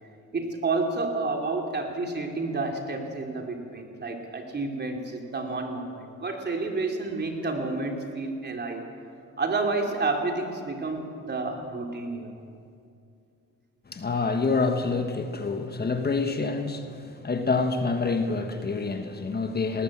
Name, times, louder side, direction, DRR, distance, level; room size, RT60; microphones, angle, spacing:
voice 1, 0.3-8.9 9.4-12.4, right 3 dB, 35° right, 2 dB, 3.3 m, -30 dB
voice 2, 13.9-19.8, left 4 dB, 30° left, 6 dB, 1.5 m, -27 dB
19.0 x 18.5 x 7.5 m, 2.4 s
cardioid pair, 90°, 30 cm